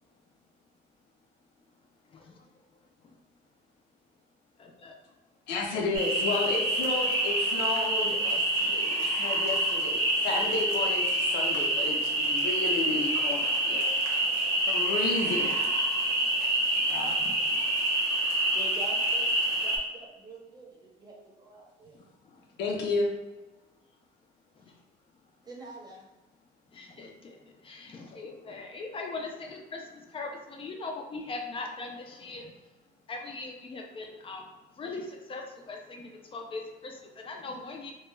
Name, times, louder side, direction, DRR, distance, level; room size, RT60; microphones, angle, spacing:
voice 1, 2.1-2.4 4.6-4.9 13.6-13.8 15.4-15.6 17.5-17.6 21.9-22.0 26.7-32.5 33.1-34.5 34.8-37.9, left 3 dB, 30° left, 2 dB, 0.4 m, -40 dB
voice 2, 5.5-13.9 14.7-15.6 16.9-17.2 22.6-23.1, left 3 dB, 90° left, 0 dB, 0.6 m, -32 dB
sound 1, 5.9-19.8, right 1 dB, 70° right, 0.8 m, -27 dB
voice 3, 18.5-22.0 25.4-26.1, right 2 dB, 25° right, -2 dB, 0.7 m, -46 dB
2.2 x 2.1 x 3.1 m, 1.1 s
cardioid pair, 110°, 17 cm